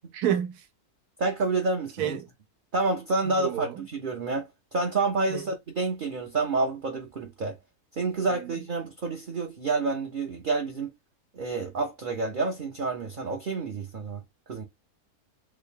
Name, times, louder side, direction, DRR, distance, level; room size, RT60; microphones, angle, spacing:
voice 1, 0.1-0.7 2.0-2.3 3.2-3.8 5.3-5.5 8.3-8.5, right 10 dB, 80° right, 1.2 m, -30 dB
voice 2, 1.2-2.2 2.7-7.6 7.9-10.9 11.3-14.2 14.5-14.6, right 3 dB, 50° right, 0.6 m, -29 dB
3.4 x 2.2 x 3.6 m
omnidirectional pair, 1.6 m